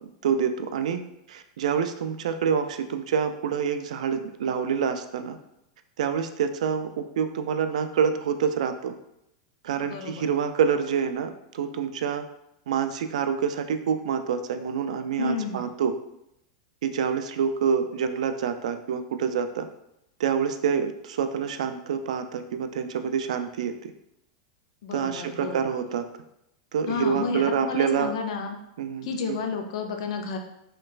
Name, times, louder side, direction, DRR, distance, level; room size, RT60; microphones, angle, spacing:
voice 1, 0.2-5.4 6.0-8.9 9.6-12.2 12.7-15.9 16.8-19.7 20.2-23.9 24.9-26.0 26.7-28.1 28.8-29.4, right 7 dB, 85° right, 8 dB, 0.4 m, -27 dB
voice 2, 9.8-10.3 15.2-15.7 24.8-25.7 26.9-28.6 29.0-30.4, left 5 dB, 60° left, 4 dB, 0.5 m, -31 dB
4.3 x 3.0 x 2.4 m, 0.83 s
supercardioid pair, 170°, 4 cm